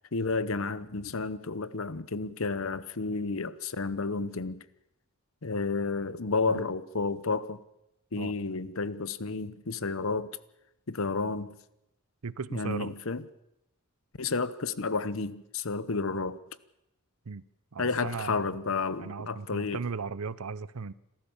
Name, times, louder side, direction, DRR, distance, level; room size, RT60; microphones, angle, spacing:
voice 1, 0.1-4.6 5.4-7.6 8.1-10.3 10.9-11.6 12.5-13.3 14.2-16.4 17.8-19.8, left 4 dB, 65° left, 0.9 m, -31 dB
voice 2, 12.2-12.9 17.3-17.4 17.7-18.5 19.0-20.9, right 5 dB, 85° right, 0.7 m, -37 dB
26.5 x 14.0 x 7.2 m
head